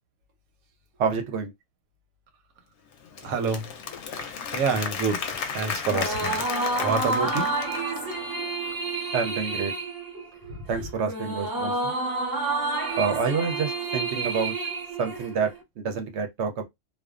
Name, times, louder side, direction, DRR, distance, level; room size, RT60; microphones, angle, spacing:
voice 1, 1.0-1.5 9.1-9.7 10.7-11.9 13.0-14.6 15.0-16.6, right 5 dB, 65° right, 0.8 m, -28 dB
Applause / Crowd, 2.9-8.3, left 6 dB, 65° left, 0.8 m, -34 dB
voice 2, 3.2-3.7 4.5-6.4 6.7-7.5, right 5 dB, 85° right, 1.2 m, -27 dB
sound 1, 5.8-15.6, right 3 dB, 25° right, 0.4 m, -29 dB
2.5 x 2.2 x 2.4 m
omnidirectional pair, 1.5 m